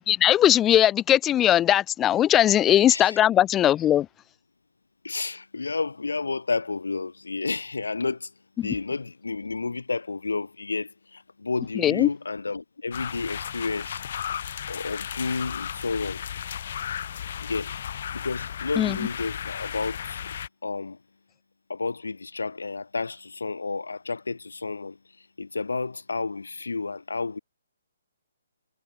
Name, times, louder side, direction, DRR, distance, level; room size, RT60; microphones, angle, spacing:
voice 1, 0.1-4.1 8.6-8.7 11.8-12.1 18.8-19.0, left 11 dB, 15° left, 0.3 m, -20 dB
voice 2, 2.9-3.2 5.0-8.3 8.6-14.0 14.7-16.2 17.4-17.9 18.1-20.2 20.6-21.0 21.7-25.0 25.4-27.4, left 3 dB, 75° left, 7.1 m, -31 dB
sound 1, 12.9-20.5, left 9 dB, 50° left, 2.8 m, -34 dB
figure-of-eight pair, 135°, 0 cm